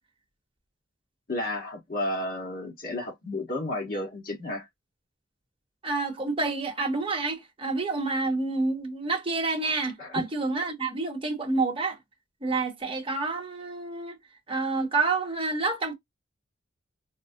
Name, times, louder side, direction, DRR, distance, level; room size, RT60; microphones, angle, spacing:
voice 1, 1.3-4.7 10.0-10.2, left 1 dB, 50° left, 1.4 m, -32 dB
voice 2, 5.8-12.0 12.4-14.2 14.5-15.9, right 3 dB, 30° right, 0.9 m, -28 dB
4.3 x 2.0 x 2.7 m
head